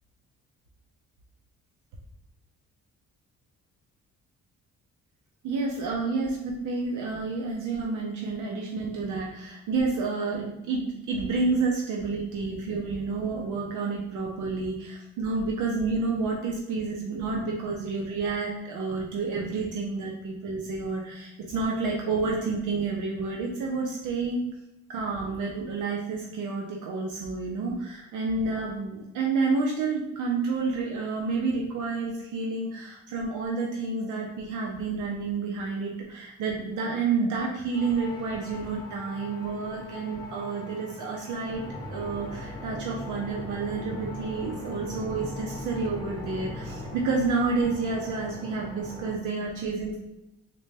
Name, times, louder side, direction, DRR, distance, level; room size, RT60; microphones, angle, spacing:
voice 1, 5.4-24.5 24.9-41.6 41.9-50.0, right 4 dB, 80° right, -1 dB, 0.6 m, -29 dB
sound 1, 37.7-49.1, left 1 dB, 15° left, 0.8 m, -40 dB
3.8 x 2.2 x 3.2 m, 0.93 s
cardioid pair, 90°, 30 cm